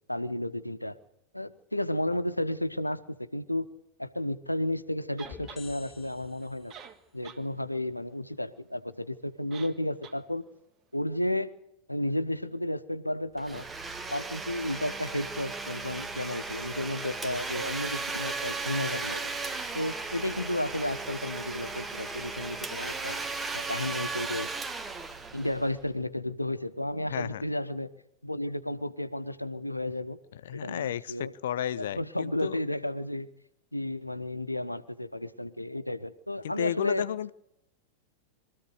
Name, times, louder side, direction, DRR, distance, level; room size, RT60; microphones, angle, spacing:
voice 1, 0.1-1.0 1.3-3.7 4.0-6.7 7.1-10.5 10.9-11.5 11.9-13.7 14.1-19.3 19.7-23.2 23.5-24.5 25.3-27.9 28.2-30.2 30.5-31.3 31.8-33.3 33.7-37.1, left 1 dB, 85° left, 13 dB, 1.0 m, -32 dB
sound 1, 5.2-6.9, left 6 dB, 15° left, 2.7 m, -49 dB
sound 2, 5.2-5.6 6.4-6.5 6.7-7.4 7.8-7.9 9.5-9.8 10.0-10.2, right 7 dB, 35° right, 1.7 m, -46 dB
Domestic sounds home sounds, 13.4-25.9, right 3 dB, 15° right, 1.7 m, -36 dB
voice 2, 27.1-27.4 30.5-32.6 36.4-37.3, left 10 dB, 60° left, 18 dB, 0.7 m, -32 dB
23.0 x 14.5 x 8.0 m, 0.82 s
figure-of-eight pair, 90°, 0 cm